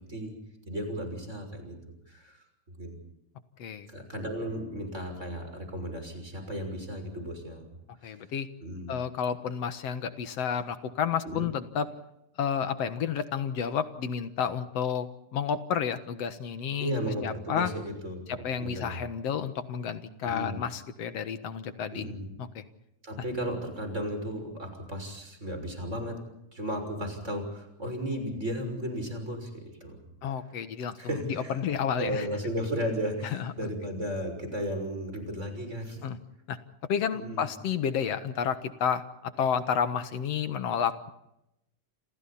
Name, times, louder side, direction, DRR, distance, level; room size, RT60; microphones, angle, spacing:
voice 1, 0.7-1.8 2.1-2.4 2.8-3.0 3.9-7.7 8.0-8.1 8.6-8.9 11.2-11.5 16.8-19.0 20.2-20.6 21.9-22.3 23.0-26.2 26.5-30.1 31.0-31.5 32.0-36.0 37.1-37.4, equal, 20° right, 5 dB, 6.4 m, -35 dB
voice 2, 8.0-8.5 8.9-11.9 12.4-16.9 17.2-17.7 18.3-22.1 22.4-22.6 30.2-32.3 33.3-33.5 36.0-36.2 36.5-36.6 36.9-41.1, left 7 dB, 55° left, 10 dB, 2.2 m, -31 dB
29.5 x 27.5 x 4.3 m, 0.85 s
omnidirectional pair, 3.8 m